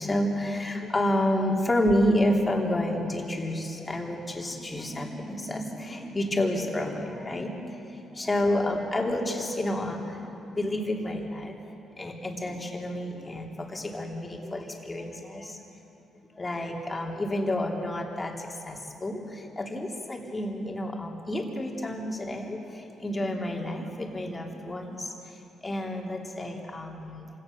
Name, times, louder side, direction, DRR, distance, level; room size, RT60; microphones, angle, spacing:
voice 1, 0.0-15.6 16.3-27.2, left 1 dB, 20° left, 0 dB, 3.4 m, -30 dB
26.5 x 17.5 x 6.9 m, 2.8 s
cardioid pair, 90°, 0 cm